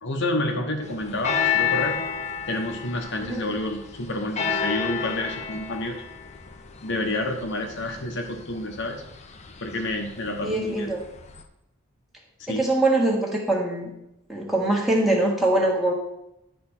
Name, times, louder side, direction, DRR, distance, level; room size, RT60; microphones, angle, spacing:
voice 1, 0.0-2.0 2.5-6.0 6.8-9.0 9.6-10.9 12.4-12.6, left 1 dB, 55° left, 3 dB, 0.9 m, -29 dB
sound 1, 0.8-11.4, left 7 dB, 30° left, 0.6 m, -31 dB
voice 2, 10.4-11.0 12.5-13.9 14.3-15.9, right 2 dB, ahead, -3 dB, 1.5 m, -23 dB
9.7 x 3.4 x 5.8 m, 0.86 s
head